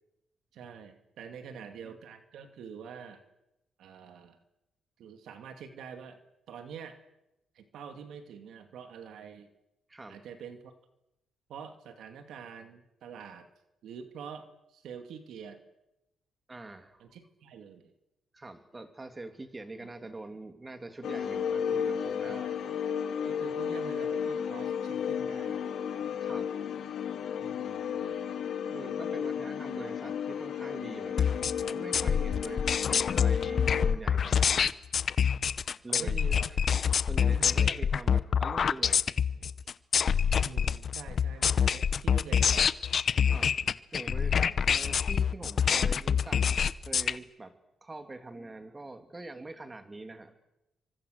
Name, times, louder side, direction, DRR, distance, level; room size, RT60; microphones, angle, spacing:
voice 1, 0.5-3.2 3.8-4.4 5.0-6.2 6.5-7.0 7.5-9.5 10.1-10.7 11.5-13.5 13.8-15.6 17.0-17.9 19.8-19.9 22.2-22.7 23.2-25.6 27.4-28.2 35.9-36.5 37.3-37.9 40.3-42.7, right 7 dB, 75° right, 7 dB, 2.5 m, -46 dB
voice 2, 1.5-2.0 9.9-10.2 16.5-17.1 18.3-22.4 26.2-26.6 28.7-34.7 35.8-36.2 36.5-36.6 37.1-39.1 39.6-39.7 43.2-43.5 43.9-47.5 47.8-50.4, right 2 dB, 20° right, 8 dB, 2.7 m, -44 dB
sound 1, 21.0-33.9, left 8 dB, 65° left, 2.1 m, -33 dB
sound 2, 31.2-47.1, left 7 dB, 50° left, 0.8 m, -26 dB
27.5 x 25.0 x 6.7 m, 0.92 s
cardioid pair, 100°, 0 cm